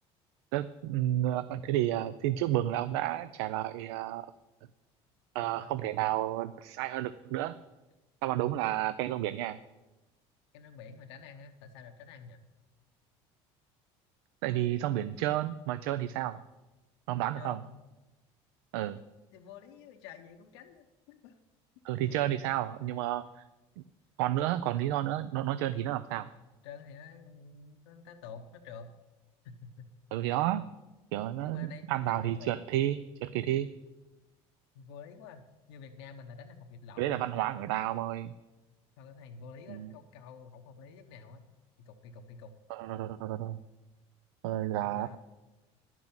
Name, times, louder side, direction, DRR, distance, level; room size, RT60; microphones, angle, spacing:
voice 1, 0.5-4.3 5.3-7.6 8.2-9.6 14.4-16.4 17.1-17.6 18.7-19.0 21.8-23.4 24.2-26.3 30.1-30.6 31.1-33.7 37.0-38.3 39.7-39.9 42.7-43.6 44.4-45.2, right 13 dB, 85° right, 14 dB, 0.4 m, -31 dB
voice 2, 5.4-5.8 10.5-12.4 17.3-17.8 18.9-19.1 19.3-21.3 22.0-22.7 26.6-28.9 29.4-29.9 30.3-30.4 31.4-32.8 34.7-37.5 39.0-41.4 41.8-42.5 44.8-45.2, left 6 dB, 90° left, 6 dB, 0.9 m, -49 dB
10.5 x 6.0 x 8.7 m, 1.1 s
supercardioid pair, 105°, 14 cm